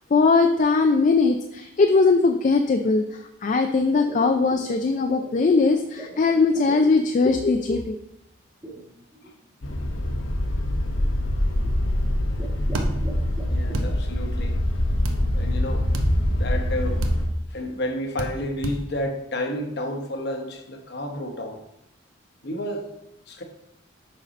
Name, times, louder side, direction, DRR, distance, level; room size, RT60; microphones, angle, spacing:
voice 1, 0.1-8.0, left 4 dB, 40° left, 6 dB, 0.3 m, -20 dB
sound 1, 3.9-7.4 8.6-9.3 10.0-10.1 10.6-10.9 11.5-11.9 12.2-13.8, right 2 dB, 20° right, 1.2 m, -40 dB
sound 2, 9.6-17.3, left 1 dB, 85° left, 1.0 m, -24 dB
sound 3, 12.7-12.9 13.7-13.9 15.0-15.2 15.9-16.1 17.0-17.2 18.2-18.3 18.6-18.8, right 1 dB, 80° right, 0.8 m, -29 dB
voice 2, 13.5-14.6 15.3-15.9 16.3-17.1 17.5-21.6 22.4-22.8 23.3-23.4, left 1 dB, 55° left, 4 dB, 1.0 m, -31 dB
6.5 x 5.4 x 4.1 m, 0.82 s
head